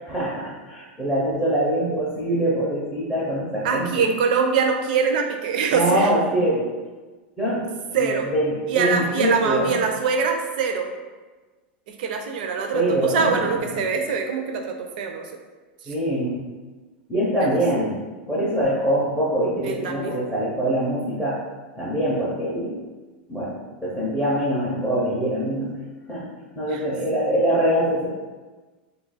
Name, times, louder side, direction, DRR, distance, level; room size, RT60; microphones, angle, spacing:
voice 1, 0.0-4.1 5.7-6.7 7.4-9.8 12.7-13.5 13.7-13.8 15.9-16.4 17.1-21.4 21.8-22.8 23.3-25.8 26.1-26.3 26.6-28.1, right 1 dB, ahead, -7 dB, 0.4 m, -24 dB
voice 2, 3.6-6.1 7.9-8.3 8.7-10.9 11.9-15.3 15.8-15.9 17.5-17.6 19.6-20.2 26.7-26.8, right 5 dB, 55° right, 4 dB, 0.4 m, -24 dB
2.6 x 2.3 x 3.9 m, 1.3 s
supercardioid pair, 180°, 6 cm